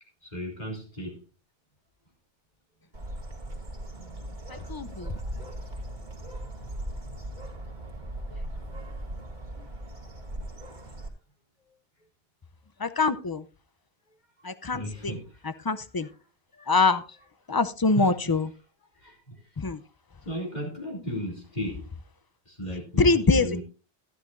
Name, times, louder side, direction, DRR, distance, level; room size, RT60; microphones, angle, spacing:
voice 1, 0.2-1.2 3.9-5.0 14.7-15.7 16.0-16.1 16.5-16.7 17.9-18.3 18.9-19.5 20.2-21.9 22.5-23.6, equal, 45° left, 3.3 m, -36 dB
Bird, 2.9-11.1, right 1 dB, 45° right, 2.4 m, -38 dB
voice 2, 4.5-5.1 8.3-8.4 12.8-13.5 14.4-15.1 15.4-16.1 16.7-17.0 17.5-18.5 19.6-19.8 23.0-23.6, left 3 dB, 30° left, 0.5 m, -24 dB
13.5 x 11.0 x 2.6 m
omnidirectional pair, 1.1 m